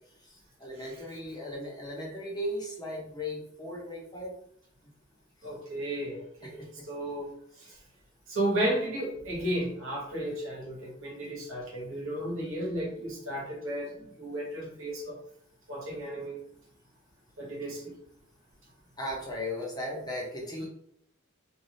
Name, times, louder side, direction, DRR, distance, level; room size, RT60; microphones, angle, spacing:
voice 1, 0.2-4.3 4.8-4.9 6.4-6.7 7.6-7.8 19.0-20.7, left 1 dB, 20° left, -3 dB, 0.7 m, -37 dB
voice 2, 5.4-7.3 7.6-7.7 8.3-15.2 15.7-16.4 17.4-17.9, right 1 dB, 70° right, -3 dB, 1.1 m, -33 dB
2.6 x 2.3 x 3.2 m, 0.69 s
head